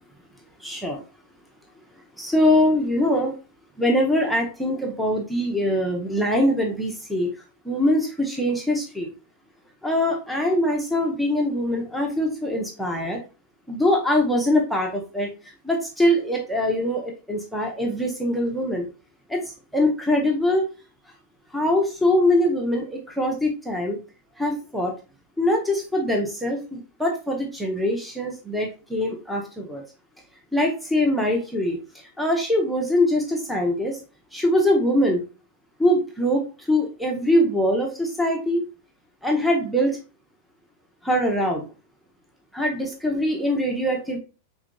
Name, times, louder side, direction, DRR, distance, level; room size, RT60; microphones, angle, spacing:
voice 1, 0.6-1.0 2.2-3.3 3.8-7.3 7.6-9.1 9.8-13.2 13.7-15.3 15.6-18.9 19.3-19.4 19.7-20.7 21.5-24.0 24.4-24.9 25.4-29.8 30.5-31.8 32.2-34.0 34.3-35.2 35.8-36.4 36.7-38.6 39.2-39.9 41.0-41.6 42.5-44.2, left 1 dB, ahead, 1 dB, 0.8 m, -23 dB
4.9 x 3.5 x 2.2 m, 0.33 s
figure-of-eight pair, 90°, 0 cm